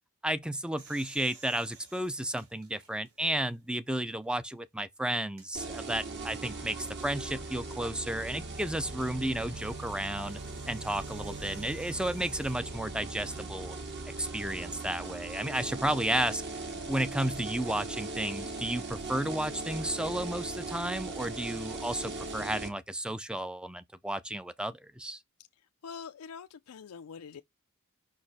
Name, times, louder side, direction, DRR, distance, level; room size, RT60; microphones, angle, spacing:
voice 1, 0.2-10.4 10.7-13.7 14.2-16.4 16.9-25.2, right 1 dB, 5° right, 0.4 m, -33 dB
sound 1, 0.8-3.7 4.2-4.3 5.2-5.5 7.6-12.5, right 4 dB, 90° right, 3.2 m, -56 dB
sound 2, 5.5-22.7, right 3 dB, 50° right, 2.0 m, -39 dB
voice 2, 25.8-27.4, left 6 dB, 85° left, 0.4 m, -44 dB
5.8 x 4.8 x 4.2 m
head